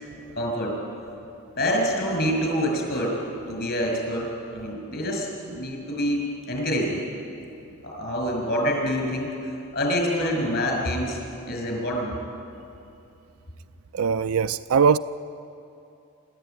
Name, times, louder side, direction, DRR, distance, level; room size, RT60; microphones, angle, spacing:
voice 1, 0.4-0.7 1.6-3.2 3.5-7.0 7.8-9.3 9.7-11.2 11.5-12.1, equal, 50° left, 5.9 m, -26 dB
voice 2, 13.9-15.0, right 6 dB, 85° right, 0.4 m, -20 dB
25.5 x 13.5 x 9.2 m
head